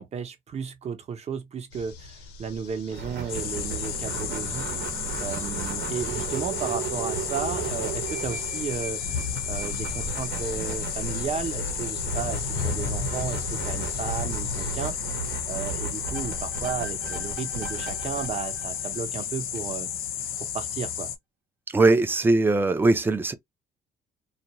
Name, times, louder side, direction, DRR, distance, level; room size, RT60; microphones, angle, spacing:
voice 1, 0.0-4.7 5.2-9.0 9.5-19.9 20.4-21.1, right 6 dB, 40° right, 0.8 m, -34 dB
sound 1, 1.7-14.9, left 4 dB, 80° left, 0.9 m, -38 dB
sound 2, 2.9-19.4, right 5 dB, 70° right, 1.0 m, -35 dB
sound 3, 3.3-21.2, left 9 dB, 60° left, 0.6 m, -33 dB
voice 2, 21.7-23.3, right 2 dB, 10° right, 0.5 m, -20 dB
2.5 x 2.2 x 2.9 m
cardioid pair, 110°, 17 cm